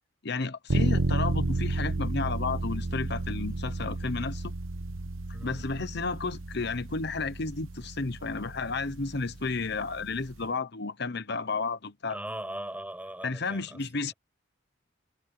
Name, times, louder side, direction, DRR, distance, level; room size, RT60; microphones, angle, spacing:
voice 1, 0.2-4.5 5.4-12.2 13.2-14.1, left 3 dB, 55° left, 1.1 m, -32 dB
sound 1, 0.7-10.4, right 2 dB, 90° right, 1.2 m, -32 dB
voice 2, 5.3-5.7 12.1-14.1, right 1 dB, 10° right, 6.3 m, -40 dB
head